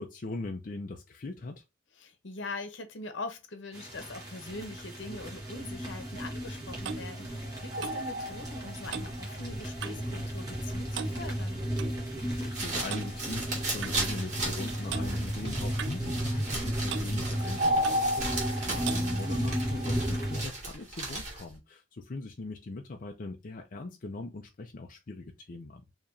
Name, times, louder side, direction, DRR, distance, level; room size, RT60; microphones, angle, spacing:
voice 1, 0.0-1.6 12.2-25.8, left 3 dB, 45° left, 0.5 m, -41 dB
voice 2, 2.0-11.6 18.7-19.1, left 2 dB, 75° left, 0.9 m, -42 dB
sound 1, 3.7-20.4, equal, 20° right, 1.6 m, -33 dB
Clock, 6.3-10.2 10.4-10.7 10.9-12.0 12.9-13.1 13.8-14.0 14.9-15.1 15.8-16.6 16.9-17.1 17.8-18.1 18.8-19.1, right 6 dB, 65° right, 0.4 m, -40 dB
sound 2, 12.3-21.6, right 2 dB, 40° right, 1.9 m, -37 dB
4.8 x 2.9 x 2.6 m
head